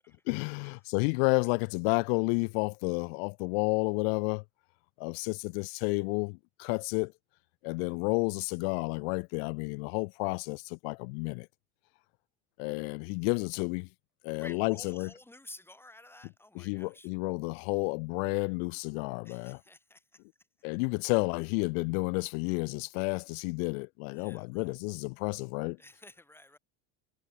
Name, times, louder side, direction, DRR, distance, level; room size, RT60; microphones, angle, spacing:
voice 1, 0.3-4.4 5.0-7.1 7.6-11.5 12.6-13.9 14.2-15.1 16.6-19.6 20.6-25.8, left 37 dB, 70° left, 0.5 m, -31 dB
voice 2, 14.4-17.1 19.2-20.2 24.1-24.8 25.8-26.6, left 1 dB, 5° left, 4.8 m, -52 dB
supercardioid pair, 115°, 32 cm